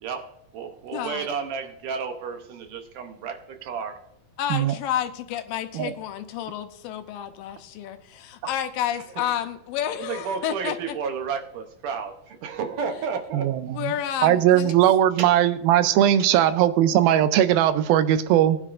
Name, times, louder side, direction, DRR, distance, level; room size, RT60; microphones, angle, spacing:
voice 1, 0.0-4.0 10.0-13.5 15.2-15.3 16.2-16.3, right 6 dB, 70° right, 5 dB, 2.1 m, -32 dB
voice 2, 0.9-1.3 4.4-11.0 12.8-12.9 13.8-14.7, left 10 dB, 80° left, 8 dB, 2.3 m, -30 dB
voice 3, 13.3-13.9 14.2-18.6, right 11 dB, 90° right, 12 dB, 2.4 m, -19 dB
19.0 x 9.9 x 2.5 m, 0.78 s
omnidirectional pair, 4.2 m